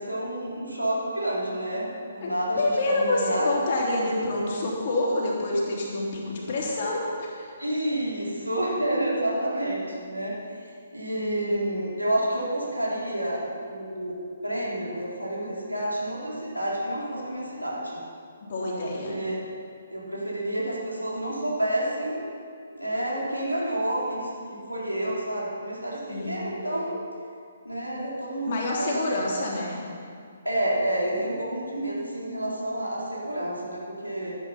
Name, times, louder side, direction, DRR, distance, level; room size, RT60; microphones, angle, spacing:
voice 1, 0.0-3.6 7.6-10.4 10.7-14.2 14.4-18.0 18.6-19.4 19.9-22.3 22.7-27.0 27.6-29.3 30.4-34.4, right 1 dB, 90° right, -5 dB, 3.7 m, -29 dB
voice 2, 2.6-7.5 18.4-19.2 26.1-26.4 28.5-29.8, left 2 dB, 45° left, -3 dB, 3.0 m, -27 dB
11.0 x 10.5 x 5.7 m, 2.3 s
figure-of-eight pair, 135°, 0 cm